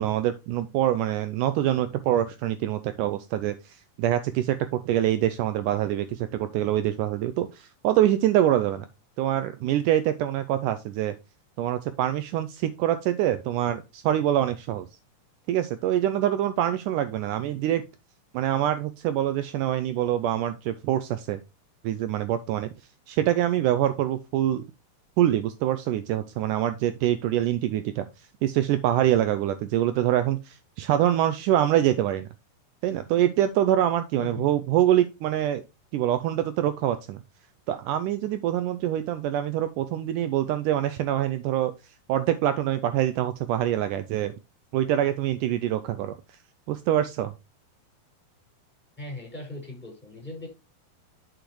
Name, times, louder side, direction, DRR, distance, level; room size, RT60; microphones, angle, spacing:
voice 1, 0.0-8.9 9.2-11.1 11.6-14.9 15.5-17.8 18.3-21.4 21.8-22.7 23.1-24.6 25.2-28.1 28.4-32.3 32.8-35.6 35.9-37.2 37.7-41.7 42.1-44.3 44.7-46.1 46.7-47.3, right 12 dB, 85° right, 11 dB, 1.8 m, -25 dB
voice 2, 34.1-34.5 49.0-50.5, left 2 dB, 5° left, -1 dB, 4.8 m, -38 dB
8.9 x 7.0 x 3.1 m, 0.26 s
omnidirectional pair, 4.2 m